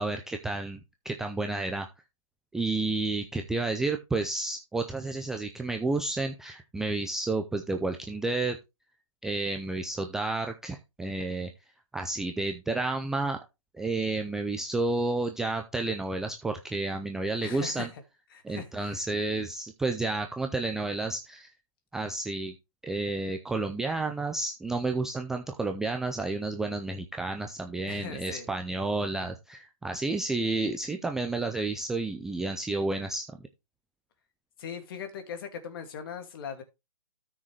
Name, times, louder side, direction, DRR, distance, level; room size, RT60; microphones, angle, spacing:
voice 1, 0.0-1.9 2.5-8.6 9.2-11.5 11.9-13.4 13.7-17.9 18.4-21.5 21.9-22.5 22.8-33.5, right 3 dB, 5° right, 0.4 m, -31 dB
voice 2, 17.4-17.9 18.3-19.0 27.9-28.5 34.6-36.6, left 7 dB, 40° left, 2.4 m, -40 dB
13.0 x 6.3 x 3.2 m
hypercardioid pair, 150°, 18 cm